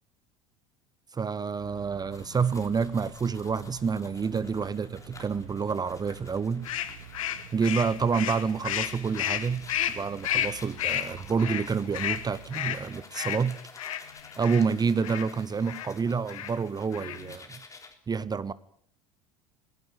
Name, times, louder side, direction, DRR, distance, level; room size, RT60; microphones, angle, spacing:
voice 1, 1.1-6.7 7.5-13.6 14.4-17.6 18.1-18.5, right 5 dB, 25° right, 0.8 m, -28 dB
sound 1, 1.6-12.9, right 8 dB, 75° right, 3.9 m, -49 dB
sound 2, 2.1-17.9, left 3 dB, 20° left, 3.5 m, -52 dB
sound 3, 6.6-14.6 15.0-15.3 15.7-15.9 16.3-16.6 16.9-17.3, left 11 dB, 75° left, 1.5 m, -32 dB
19.5 x 16.5 x 9.3 m
hypercardioid pair, 70°, 17 cm